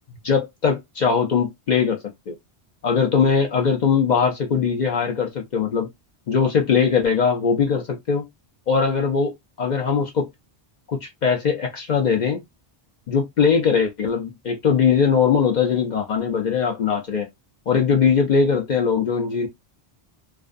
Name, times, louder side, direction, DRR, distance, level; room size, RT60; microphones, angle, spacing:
voice 1, 0.2-2.0 2.3-2.4 2.8-5.9 6.3-8.3 8.7-9.3 9.6-10.3 10.9-12.4 13.1-17.3 17.7-19.5, left 6 dB, 55° left, 0.6 m, -20 dB
2.4 x 2.2 x 2.4 m
omnidirectional pair, 1.1 m